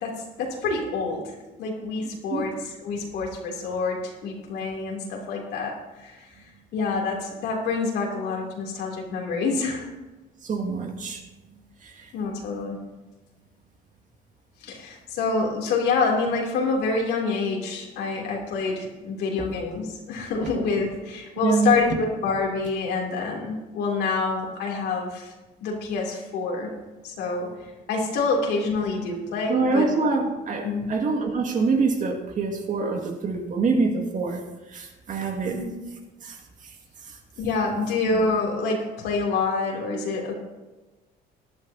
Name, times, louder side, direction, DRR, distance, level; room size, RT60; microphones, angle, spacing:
voice 1, 0.0-1.3 1.6-6.3 6.7-9.9 12.1-12.8 14.6-25.3 25.6-26.7 27.0-27.5 27.9-29.9 30.6-30.9 35.4-35.7 37.4-40.3, left 4 dB, 80° left, 0 dB, 3.0 m, -27 dB
voice 2, 2.0-2.4 10.4-11.2 11.8-12.1 19.4-19.5 21.4-21.7 29.5-34.4 34.7-35.6 36.2-36.4 37.1-37.2, right 4 dB, 50° right, 2 dB, 2.1 m, -25 dB
18.5 x 11.5 x 2.8 m, 1.1 s
cardioid pair, 110°, 17 cm